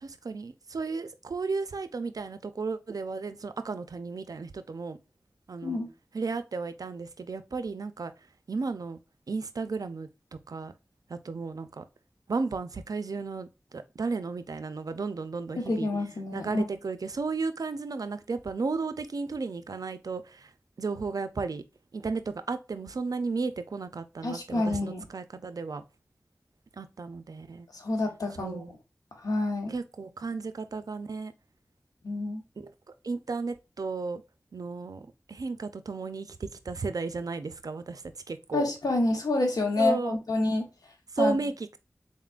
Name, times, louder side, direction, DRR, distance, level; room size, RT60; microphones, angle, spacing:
voice 1, 0.0-5.0 5.5-5.8 6.1-8.1 8.5-9.0 9.3-10.1 10.5-10.7 11.1-11.8 12.3-13.5 13.7-15.9 16.3-20.5 20.8-21.6 21.9-25.8 26.8-27.7 28.4-28.7 29.7-31.3 32.6-32.7 33.0-34.2 34.5-38.0 38.3-38.7 39.8-40.2 41.1-41.8, right 4 dB, 80° right, 0.4 m, -34 dB
voice 2, 15.6-16.6 24.2-25.0 27.7-28.6 29.2-29.7 32.0-32.4 38.5-40.7 41.2-41.4, left 2 dB, 90° left, 1.1 m, -28 dB
4.1 x 3.6 x 2.4 m
wide cardioid pair, 50°, 6 cm